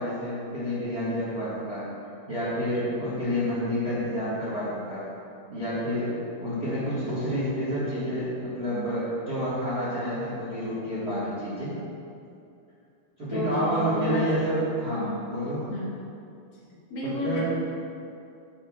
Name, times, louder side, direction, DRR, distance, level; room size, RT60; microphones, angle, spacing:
voice 1, 0.0-1.8 2.3-5.0 5.5-11.7 13.2-15.6 17.0-17.4, equal, 40° right, -10 dB, 1.4 m, -29 dB
voice 2, 13.3-14.3 14.9-15.2 15.7-15.9 16.9-17.4, left 1 dB, 70° left, -4 dB, 2.7 m, -31 dB
12.5 x 7.2 x 2.4 m, 2.5 s
omnidirectional pair, 4.4 m